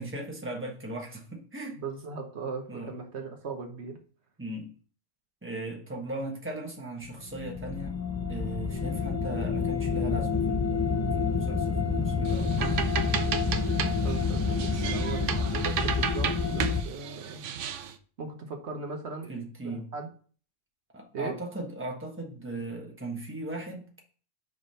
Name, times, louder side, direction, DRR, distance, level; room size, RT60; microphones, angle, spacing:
voice 1, 0.0-1.8 2.7-2.9 4.4-4.7 5.4-8.0 8.3-12.5 19.3-19.9 20.9-24.0, right 2 dB, 10° right, 0 dB, 1.4 m, -38 dB
voice 2, 1.7-4.0 13.7-17.4 18.2-19.3 19.6-20.1 21.1-21.3, right 4 dB, 65° right, 3 dB, 1.3 m, -38 dB
sound 1, 7.0-16.8, left 4 dB, 30° left, 0.3 m, -28 dB
sound 2, 12.3-17.9, right 8 dB, 85° right, 1.0 m, -33 dB
5.3 x 4.8 x 5.5 m, 0.42 s
omnidirectional pair, 1.2 m